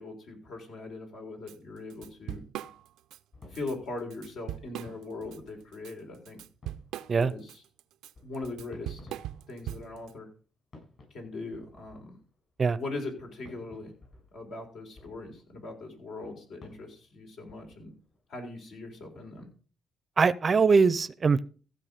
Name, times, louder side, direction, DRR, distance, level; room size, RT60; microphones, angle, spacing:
voice 1, 0.0-2.4 3.5-6.4 7.2-7.6 8.2-9.0 9.5-10.3 11.1-12.1 12.7-13.9 14.3-17.9 18.3-19.5, left 2 dB, 75° left, 3.8 m, -40 dB
Drum kit / Drum, 1.5-1.6 1.9-3.2 3.6-3.7 4.1-5.4 5.7-10.1, right 12 dB, 90° right, 0.5 m, -40 dB
sound 1, 3.3-6.3 6.5-7.3 8.1-10.4 10.7-12.6 13.4-18.5 19.1-19.2, left 2 dB, 45° left, 7.2 m, -56 dB
voice 2, 20.2-21.5, right 5 dB, 40° right, 0.5 m, -22 dB
15.0 x 5.9 x 5.1 m
cardioid pair, 90°, 0 cm